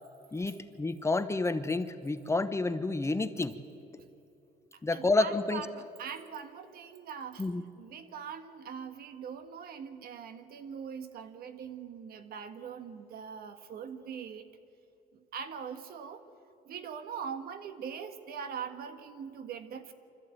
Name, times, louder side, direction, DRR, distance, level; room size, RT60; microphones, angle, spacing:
voice 1, 0.3-3.6 4.8-5.6 7.4-7.6, left 3 dB, 15° left, 11 dB, 0.9 m, -29 dB
voice 2, 4.9-7.5 7.8-14.5 15.1-16.2 16.6-19.9, right 7 dB, 65° right, 9 dB, 1.5 m, -42 dB
25.0 x 14.0 x 9.0 m, 2.7 s
cardioid pair, 110°, 17 cm